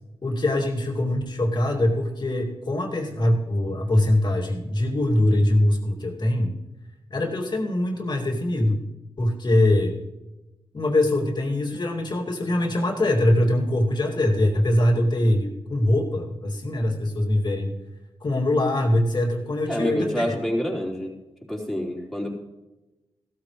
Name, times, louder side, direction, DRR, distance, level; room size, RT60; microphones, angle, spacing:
voice 1, 0.2-6.5 7.1-8.8 9.2-10.0 10.7-17.8 18.2-20.4, left 1 dB, 45° left, 1 dB, 2.5 m, -23 dB
voice 2, 19.7-21.1 21.5-22.3, equal, ahead, -3 dB, 3.9 m, -27 dB
16.0 x 13.5 x 3.2 m, 1.0 s
cardioid pair, 65°, 10 cm